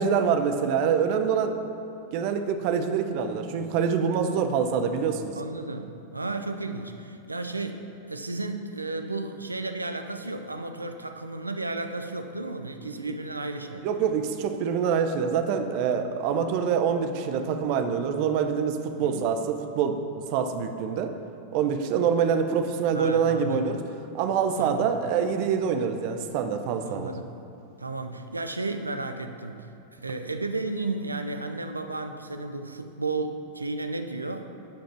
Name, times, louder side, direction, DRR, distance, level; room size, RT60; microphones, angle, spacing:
voice 1, 0.0-1.6 2.1-5.3 12.8-13.2 13.8-20.0 20.3-21.1 21.5-23.8 24.1-27.1, right 6 dB, 50° right, 7 dB, 0.8 m, -25 dB
voice 2, 5.3-14.0 18.9-19.3 22.9-23.7 24.6-24.9 26.8-27.2 27.8-34.5, right 3 dB, 85° right, 7 dB, 0.6 m, -33 dB
12.0 x 5.2 x 5.8 m, 2.6 s
figure-of-eight pair, 90°, 0 cm